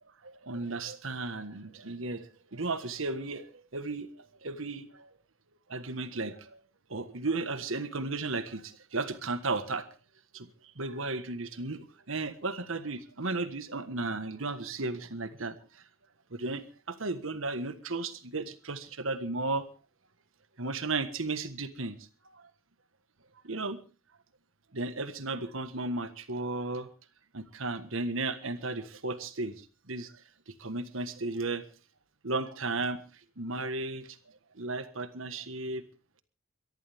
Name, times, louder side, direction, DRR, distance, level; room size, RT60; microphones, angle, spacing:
voice 1, 0.2-2.2 2.5-3.4 3.7-4.1 4.4-5.1 5.7-6.4 6.9-8.6 8.9-9.9 10.3-10.5 10.8-15.5 16.3-16.6 16.9-19.6 20.6-22.0 23.4-23.8 24.7-26.9 27.3-29.5 29.9-30.1 30.6-31.6 32.2-33.0 33.4-34.1 34.6-35.8, right 3 dB, 85° right, 11 dB, 1.5 m, -34 dB
23.0 x 13.5 x 3.6 m, 0.35 s
head